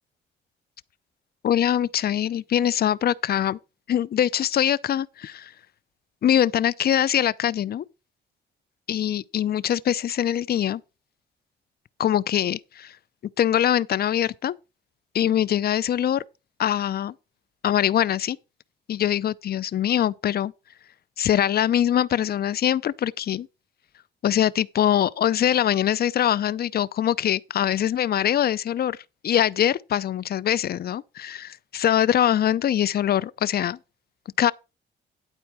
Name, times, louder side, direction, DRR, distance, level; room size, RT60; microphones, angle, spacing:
voice 1, 1.4-3.6 3.9-5.5 6.2-7.8 8.9-10.8 12.0-13.0 13.4-14.5 15.1-16.2 16.6-17.1 17.6-18.4 18.9-20.5 21.2-23.5 24.2-29.0 29.2-33.8 34.4-34.5, left 10 dB, 50° left, 0.5 m, -23 dB
11.5 x 4.5 x 6.0 m
cardioid pair, 90°, 20 cm